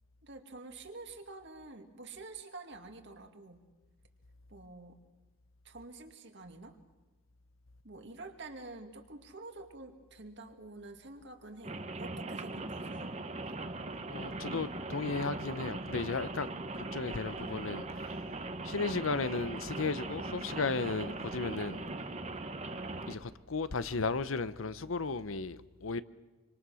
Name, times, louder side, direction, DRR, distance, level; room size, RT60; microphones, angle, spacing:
voice 1, 0.2-3.6 4.5-5.0 5.6-6.8 7.8-13.1, right 3 dB, 55° right, 2.3 m, -48 dB
Rain, 11.6-23.1, right 2 dB, 30° right, 1.2 m, -40 dB
voice 2, 14.1-16.5 16.7-18.1 18.6-21.8 23.1-26.0, left 4 dB, 70° left, 0.9 m, -35 dB
26.5 x 25.5 x 6.4 m
head